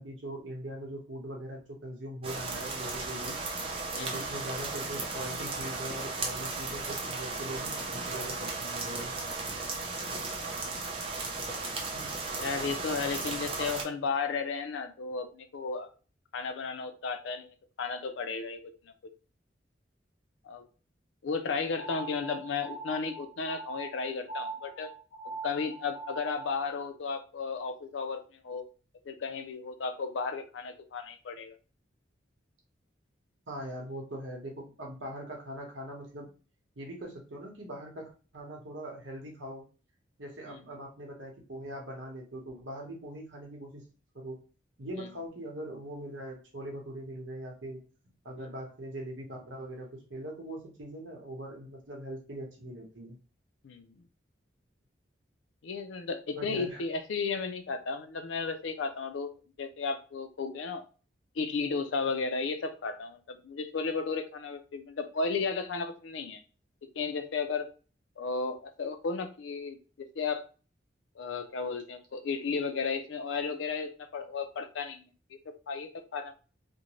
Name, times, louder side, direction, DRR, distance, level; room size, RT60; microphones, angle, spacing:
voice 1, 0.0-3.4 4.0-9.1 11.9-12.2 33.5-36.3 36.8-39.6 40.2-43.8 44.1-44.4 44.8-47.8 48.2-53.2 56.4-56.8, right 1 dB, 85° right, 0.9 m, -41 dB
sound 1, 2.2-13.8, right 3 dB, 30° right, 0.5 m, -35 dB
voice 2, 3.9-4.3 10.1-10.2 12.3-15.9 16.3-18.7 19.0-19.1 20.4-20.6 21.2-24.9 25.4-28.6 29.1-31.6 40.5-40.6 45.0-45.1 48.4-48.5 53.6-53.9 55.6-59.3 59.6-60.8 61.4-66.4 67.0-67.7 68.2-70.4 71.2-75.1 75.5-76.3, left 4 dB, 85° left, 0.4 m, -34 dB
sound 2, 21.8-26.7, right 4 dB, 30° left, 1.0 m, -42 dB
2.5 x 2.1 x 3.0 m
head